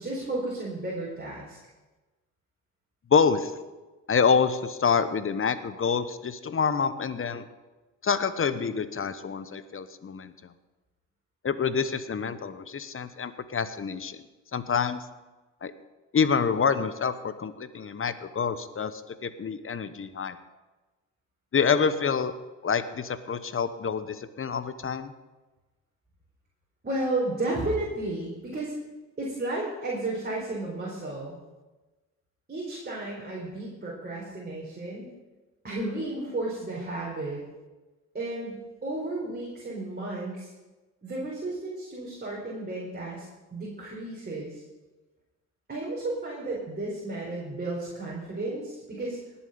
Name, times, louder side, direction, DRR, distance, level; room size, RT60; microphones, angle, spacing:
voice 1, 0.0-1.6 26.8-28.7 29.2-31.4 32.5-35.1 35.6-37.4 38.1-40.5 41.0-43.2 43.5-44.6 45.7-49.2, right 2 dB, 25° right, -5 dB, 4.5 m, -33 dB
voice 2, 3.1-3.5 4.1-7.5 8.0-10.3 11.4-14.2 14.5-15.0 15.6-15.7 16.1-20.4 21.5-22.3 22.6-25.1, left 6 dB, 35° left, 13 dB, 1.0 m, -27 dB
19.0 x 7.3 x 5.2 m, 1.2 s
hypercardioid pair, 55°, 37 cm